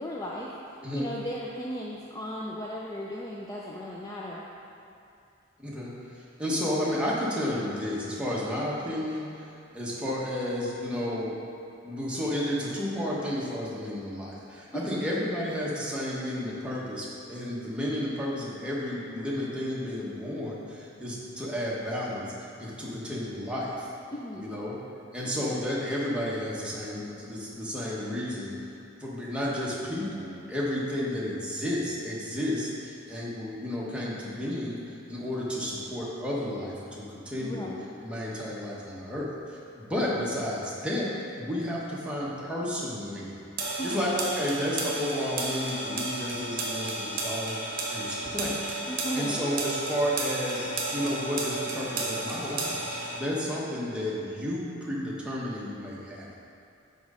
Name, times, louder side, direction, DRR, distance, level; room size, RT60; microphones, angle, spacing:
voice 1, 0.0-4.5 14.7-15.1 24.1-24.5 37.4-37.9 43.8-44.1 48.9-49.5, equal, 20° left, -4 dB, 0.4 m, -36 dB
voice 2, 5.6-11.4 11.8-23.9 24.4-24.8 25.1-28.5 29.0-34.8 35.1-37.7 38.0-41.1 41.4-43.3 43.6-48.6 49.1-52.8 53.2-56.3, left 1 dB, 5° right, -6 dB, 1.1 m, -32 dB
sound 1, 43.6-53.2, right 2 dB, 45° right, 1.0 m, -33 dB
6.1 x 5.3 x 4.8 m, 2.6 s
head